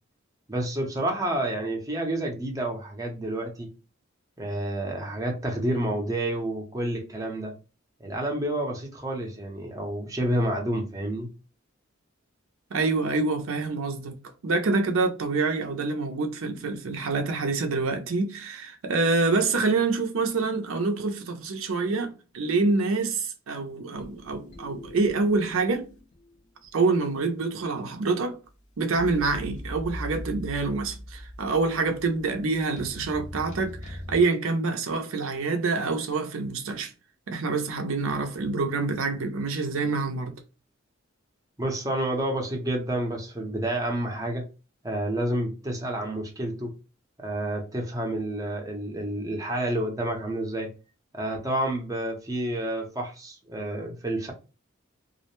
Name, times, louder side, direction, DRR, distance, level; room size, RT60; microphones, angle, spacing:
voice 1, 0.5-3.7 4.4-7.5 8.0-11.3 41.6-44.4 44.8-46.8 47.2-50.7 51.1-54.3, right 1 dB, 15° right, 0.6 m, -29 dB
voice 2, 12.7-25.9 26.7-28.4 28.8-36.9 37.3-40.3, right 3 dB, 75° right, 0.5 m, -26 dB
sound 1, 23.9-26.4 26.6-26.7 28.9-34.2, left 1 dB, 40° left, 0.6 m, -40 dB
2.4 x 2.0 x 2.9 m
head